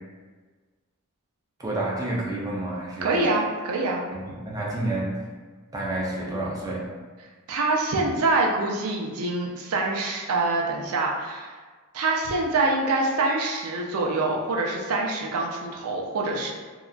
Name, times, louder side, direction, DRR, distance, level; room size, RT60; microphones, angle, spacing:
voice 1, 1.6-3.3 4.1-5.3 5.7-6.8, right 1 dB, 15° right, -5 dB, 0.5 m, -29 dB
voice 2, 3.0-4.0 7.5-11.5 11.9-16.5, right 2 dB, 70° right, 0 dB, 0.4 m, -25 dB
2.8 x 2.2 x 2.4 m, 1.4 s
head